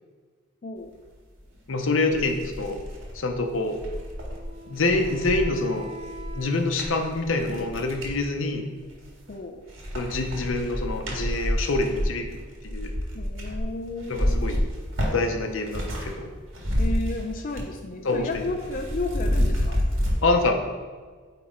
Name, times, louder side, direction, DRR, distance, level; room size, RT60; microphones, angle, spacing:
sound 1, 1.5-1.6 2.0-8.2 8.8-9.4 9.7-16.1 16.4-17.8 18.0-20.2, equal, 75° right, 1.8 m, -29 dB
voice 1, 1.7-2.8 3.1-3.8 4.7-5.9 6.3-8.7 9.9-12.3 12.6-12.9 14.1-14.6 15.1-16.3 18.0-18.3 20.2-20.6, left 2 dB, 80° left, 5 dB, 0.7 m, -26 dB
Wind instrument woodwind instrument, 3.9-7.5, equal, 60° right, 1.6 m, -44 dB
voice 2, 9.3-9.6 13.1-14.7 16.8-19.8, left 2 dB, 40° left, 4 dB, 0.4 m, -33 dB
8.9 x 3.5 x 4.4 m, 1.5 s
head